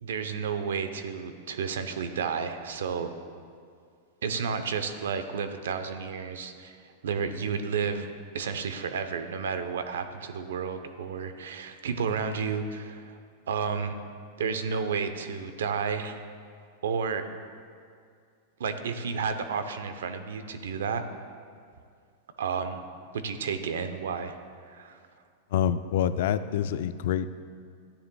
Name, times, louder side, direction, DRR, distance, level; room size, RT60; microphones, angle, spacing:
voice 1, 0.0-3.1 4.2-8.1 8.3-13.2 13.5-14.0 14.4-16.2 16.8-17.2 18.6-21.0 22.4-22.9 23.1-24.4 24.7-25.0, right 6 dB, 90° right, 9 dB, 0.7 m, -31 dB
voice 2, 25.5-27.4, left 9 dB, 70° left, 12 dB, 0.4 m, -26 dB
13.0 x 9.8 x 2.3 m, 2.2 s
supercardioid pair, 135°, 0 cm